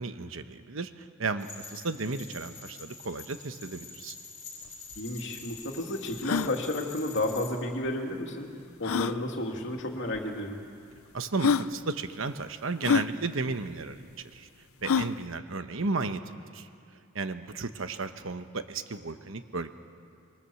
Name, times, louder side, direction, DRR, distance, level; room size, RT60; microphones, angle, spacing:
voice 1, 0.0-4.1 11.1-14.0 14.3-14.5 14.8-16.7 17.1-19.7, right 3 dB, 70° right, 9 dB, 1.1 m, -34 dB
sound 1, 1.4-7.5, left 5 dB, 35° left, 4.9 m, -46 dB
sound 2, 4.7-4.8 4.9-5.0 5.6-5.7 6.2-6.5 7.9-8.0 8.8-9.2 10.1-10.2 11.0-11.1 11.4-11.7 12.8-13.1 14.8-15.2, left 6 dB, 85° left, 0.6 m, -26 dB
voice 2, 5.0-8.5 8.8-10.6, left 1 dB, 60° left, 1 dB, 2.7 m, -32 dB
25.5 x 22.5 x 7.1 m, 2.5 s
head